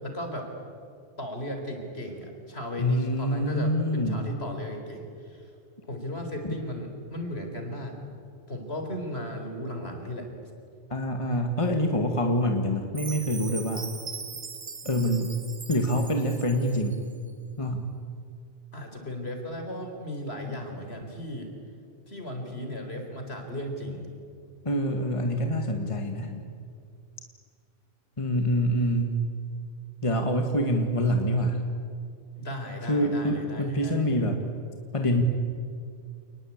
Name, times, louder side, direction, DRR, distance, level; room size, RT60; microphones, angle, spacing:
voice 1, 0.0-0.5 1.2-5.4 5.9-7.9 8.5-10.3 18.7-21.5 22.1-24.0 32.4-34.5, left 1 dB, 55° left, 4 dB, 4.4 m, -36 dB
voice 2, 2.8-4.3 6.4-6.5 10.9-13.8 14.8-15.3 15.7-17.0 17.6-17.9 24.6-26.4 28.2-29.2 30.0-31.7 32.9-34.4 34.9-35.2, equal, 25° left, 4 dB, 1.8 m, -26 dB
Chime, 12.9-17.0, right 5 dB, 30° right, 1.0 m, -40 dB
29.0 x 20.0 x 8.7 m, 2.4 s
omnidirectional pair, 1.3 m